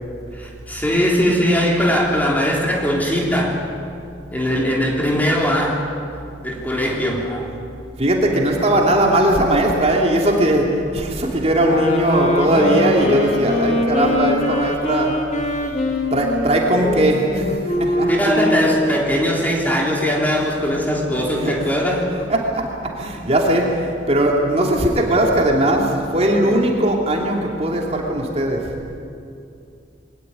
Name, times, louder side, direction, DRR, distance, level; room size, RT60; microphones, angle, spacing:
voice 1, 0.4-3.6 4.3-5.8 6.4-7.5 18.1-22.1, equal, 10° left, -2 dB, 3.4 m, -20 dB
voice 2, 8.0-15.2 16.1-18.6 21.3-21.7 22.1-28.7, right 1 dB, 35° right, 0 dB, 2.8 m, -19 dB
sound 1, 11.6-19.1, left 1 dB, 40° left, 3.0 m, -22 dB
22.5 x 19.0 x 9.5 m, 2.5 s
head